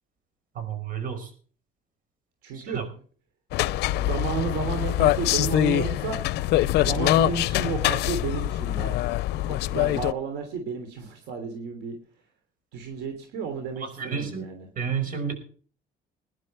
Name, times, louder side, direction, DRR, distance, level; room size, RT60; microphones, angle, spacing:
voice 1, 0.5-1.3 2.5-2.8 13.8-14.4 14.8-15.3, right 7 dB, 55° right, 8 dB, 5.3 m, -31 dB
voice 2, 2.4-2.9 3.9-6.3 6.8-9.0 9.3-12.0 12.7-14.7, right 6 dB, 90° right, 6 dB, 3.2 m, -32 dB
sound 1, 3.5-10.1, left 15 dB, 80° left, 0.6 m, -24 dB
21.5 x 11.0 x 3.3 m, 0.43 s
cardioid pair, 110°, 17 cm